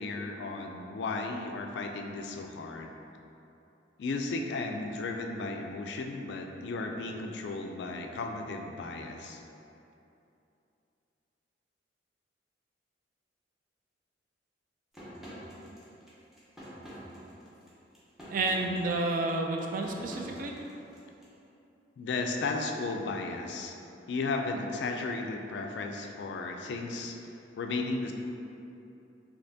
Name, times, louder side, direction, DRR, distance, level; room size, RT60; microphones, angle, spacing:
voice 1, 0.0-2.9 4.0-9.4 22.0-23.8 24.1-27.2 27.6-28.1, left 3 dB, 65° left, 3 dB, 0.3 m, -34 dB
sound 1, 14.9-21.3, equal, ahead, 0.7 m, -47 dB
voice 2, 18.3-20.5, right 2 dB, 45° right, 1 dB, 0.3 m, -30 dB
4.1 x 2.8 x 2.7 m, 2.8 s
head